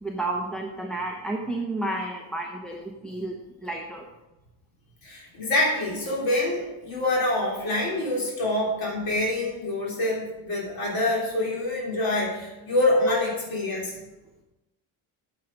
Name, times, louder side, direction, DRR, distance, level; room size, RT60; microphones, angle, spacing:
voice 1, 0.0-3.4 3.6-4.1, right 2 dB, ahead, -1 dB, 0.8 m, -31 dB
voice 2, 5.0-14.0, left 1 dB, 45° left, -4 dB, 3.4 m, -26 dB
9.3 x 7.4 x 5.0 m, 1.0 s
cardioid pair, 145°, 48 cm